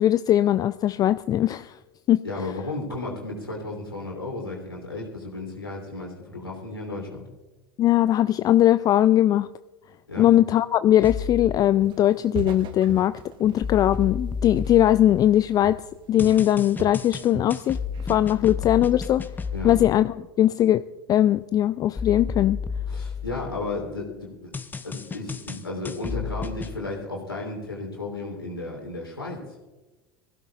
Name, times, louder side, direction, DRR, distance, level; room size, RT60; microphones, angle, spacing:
voice 1, 0.0-1.7 2.1-2.2 7.8-9.5 10.2-15.8 16.1-17.8 18.1-19.2 19.6-20.8 21.1-22.6, left 12 dB, 30° left, 14 dB, 0.3 m, -20 dB
voice 2, 2.2-7.2 10.1-10.3 19.5-19.8 22.9-24.5 24.8-29.4, left 2 dB, 90° left, -2 dB, 3.3 m, -33 dB
sound 1, 11.0-11.6 13.6-15.5 16.2-19.9 22.0-23.8 24.5-26.8, left 6 dB, 15° left, 0.8 m, -32 dB
Walk footsteps, 11.8-12.1 12.3-15.4 15.6-16.0 16.2-17.6 17.9-18.3, right 7 dB, 40° right, 0.9 m, -38 dB
23.0 x 15.5 x 2.4 m, 1.2 s
figure-of-eight pair, 80°, 12 cm